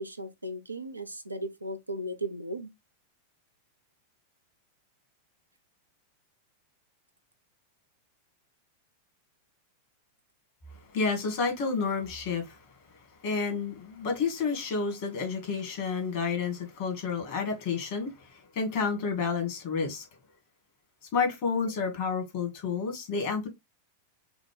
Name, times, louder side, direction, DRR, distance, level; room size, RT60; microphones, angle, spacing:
voice 1, 0.0-2.7, right 1 dB, 85° right, 0.5 m, -36 dB
voice 2, 10.9-12.6 13.2-20.0 21.1-23.5, left 5 dB, 50° left, 1.9 m, -30 dB
6.0 x 2.2 x 3.3 m
figure-of-eight pair, 90°, 0 cm